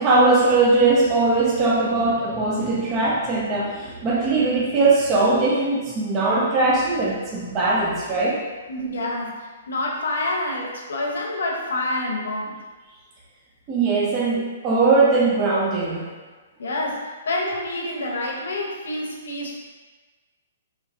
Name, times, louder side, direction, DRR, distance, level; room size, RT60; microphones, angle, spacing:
voice 1, 0.0-8.4 13.7-16.1, right 3 dB, 20° right, -5 dB, 0.4 m, -20 dB
voice 2, 8.7-12.6 16.6-19.5, left 2 dB, 80° left, -1 dB, 0.8 m, -27 dB
4.1 x 2.8 x 2.6 m, 1.3 s
hypercardioid pair, 170°, 0 cm